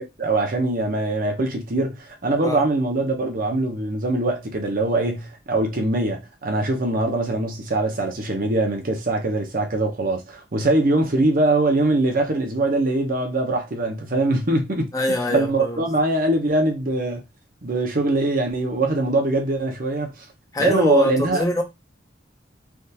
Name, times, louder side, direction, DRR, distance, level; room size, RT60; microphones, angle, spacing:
voice 1, 0.2-14.9 15.3-17.2 17.6-20.2 20.6-21.4, right 2 dB, 50° right, 0.8 m, -22 dB
voice 2, 14.9-15.8 20.5-21.6, left 1 dB, 20° left, 0.6 m, -23 dB
3.4 x 2.5 x 2.8 m
head